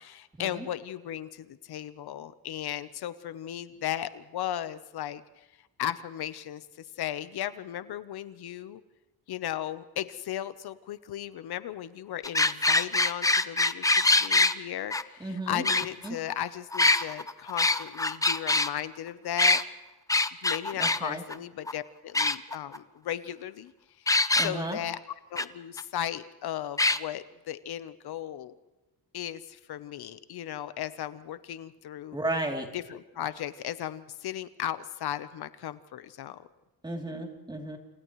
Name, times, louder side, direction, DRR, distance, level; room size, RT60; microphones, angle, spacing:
voice 1, 0.0-5.2 5.8-6.7 7.0-8.8 9.3-19.6 20.4-23.7 24.0-25.0 25.3-28.5 29.1-32.2 32.7-36.4, left 11 dB, 75° left, 13 dB, 0.9 m, -36 dB
sound 1, 12.2-14.5 14.9-15.0 15.6-16.3 16.7-18.7 19.4-19.6 20.1-21.0 21.3-21.4 21.7-21.8 22.1-22.8 24.1-24.5 25.4-25.5 25.8-25.9 26.8-27.0, left 2 dB, 10° left, 0.6 m, -24 dB
voice 2, 15.2-15.6 16.0-16.2 20.8-21.2 24.4-24.8 32.1-32.7 36.8-37.8, right 1 dB, 10° right, 2 dB, 3.1 m, -33 dB
29.5 x 28.5 x 3.2 m, 1.1 s
wide cardioid pair, 160°, 38 cm